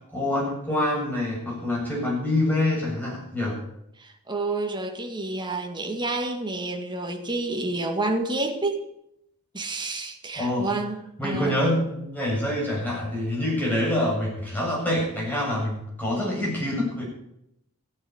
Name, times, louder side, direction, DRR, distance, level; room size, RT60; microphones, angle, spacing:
voice 1, 0.1-3.6 10.3-10.7 11.2-17.1, left 1 dB, 10° left, -4 dB, 7.9 m, -26 dB
voice 2, 4.0-8.9 9.5-11.6, right 2 dB, 20° right, 3 dB, 2.0 m, -29 dB
15.0 x 8.8 x 8.7 m, 0.79 s
head